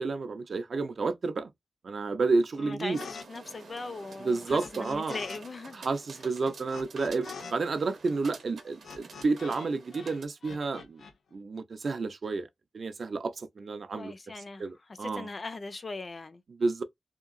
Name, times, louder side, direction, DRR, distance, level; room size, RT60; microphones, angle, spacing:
voice 1, 0.0-1.5 1.8-3.0 4.2-5.2 5.7-11.0 11.3-12.5 12.7-14.1 14.6-15.3 16.6-16.8, right 3 dB, 50° right, 0.4 m, -30 dB
voice 2, 2.6-5.9 6.1-6.3 13.9-16.4, left 3 dB, 35° left, 0.4 m, -40 dB
sound 1, 2.9-3.3 3.5-5.4 5.7-9.7 9.9-11.1, left 5 dB, 80° left, 0.6 m, -45 dB
sound 2, 2.9-10.2, right 4 dB, 85° right, 0.7 m, -49 dB
2.8 x 2.6 x 2.5 m
wide cardioid pair, 135°, 0 cm